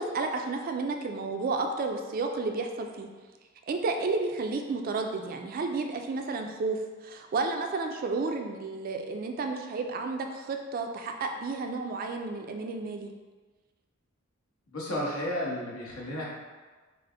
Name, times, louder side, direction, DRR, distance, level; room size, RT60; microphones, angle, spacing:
voice 1, 0.0-3.1 3.7-13.1, right 3 dB, 40° right, 4 dB, 0.3 m, -32 dB
voice 2, 14.7-16.2, left 1 dB, 85° left, -5 dB, 1.1 m, -32 dB
5.0 x 2.1 x 3.3 m, 1.4 s
head